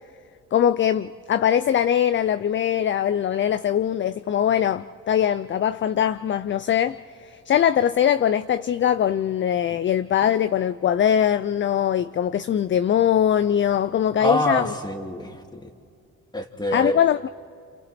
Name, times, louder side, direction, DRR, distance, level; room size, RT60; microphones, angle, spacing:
voice 1, 0.5-14.7 16.7-17.3, left 9 dB, 40° left, 0.5 m, -22 dB
voice 2, 14.2-15.7 16.3-17.0, left 1 dB, 15° left, 2.3 m, -25 dB
29.5 x 27.5 x 4.3 m
cardioid pair, 90°, 30 cm